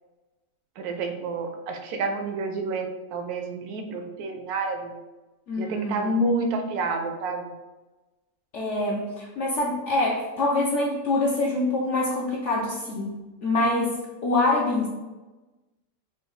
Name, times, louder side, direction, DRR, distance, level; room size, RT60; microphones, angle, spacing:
voice 1, 0.8-4.9 5.6-7.5, right 2 dB, 80° right, 5 dB, 1.1 m, -29 dB
voice 2, 5.5-6.1 8.5-14.0 14.2-14.9, left 2 dB, 65° left, -3 dB, 0.8 m, -25 dB
3.9 x 2.2 x 3.8 m, 1.1 s
omnidirectional pair, 1.6 m